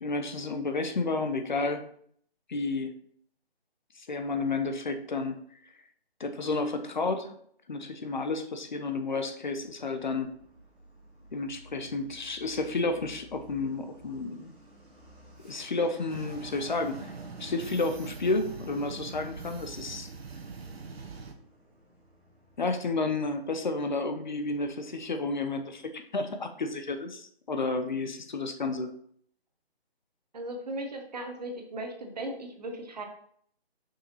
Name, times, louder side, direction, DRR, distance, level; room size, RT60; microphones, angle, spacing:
voice 1, 0.0-1.8 2.5-2.9 4.0-5.4 6.2-7.3 7.7-10.3 11.3-14.5 15.4-17.1 17.4-20.1 22.6-28.9, left 3 dB, 45° left, 7 dB, 0.8 m, -31 dB
Truck, 9.6-25.8, right 1 dB, 5° right, 1.3 m, -55 dB
sound 1, 16.1-21.3, right 4 dB, 70° right, 1.2 m, -43 dB
voice 2, 30.3-33.1, right 1 dB, 40° right, 4 dB, 1.3 m, -37 dB
5.8 x 5.7 x 4.1 m, 0.62 s
figure-of-eight pair, 165°, 32 cm